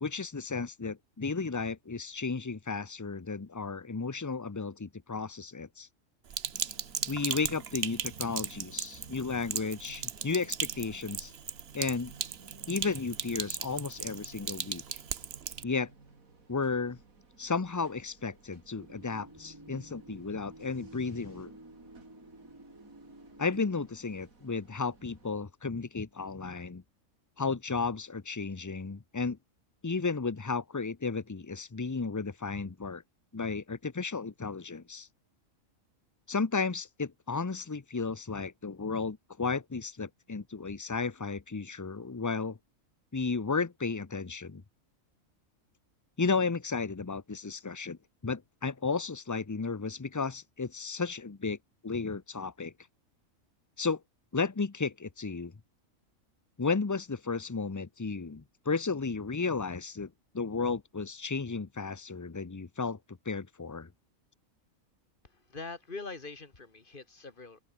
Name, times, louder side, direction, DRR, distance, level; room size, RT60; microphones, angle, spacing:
voice 1, 0.0-5.9 7.1-11.3 11.7-12.1 12.7-14.8 15.6-15.9 16.5-17.0 17.4-21.5 23.4-26.8 27.4-29.4 29.8-33.0 33.3-35.1 36.3-42.6 43.1-44.6 46.2-48.0 48.2-51.6 51.8-52.7 53.8-54.0 54.3-55.5 56.6-63.0 63.3-63.9, left 4 dB, 20° left, 0.5 m, -33 dB
Sink (filling or washing), 6.3-15.6, right 7 dB, 50° right, 1.2 m, -37 dB
sound 1, 6.5-25.3, right 3 dB, 85° right, 3.6 m, -59 dB
sound 2, 18.8-23.9, right 1 dB, 15° right, 2.0 m, -51 dB
voice 2, 65.2-67.6, left 3 dB, 40° left, 2.5 m, -43 dB
open air
omnidirectional pair, 1.4 m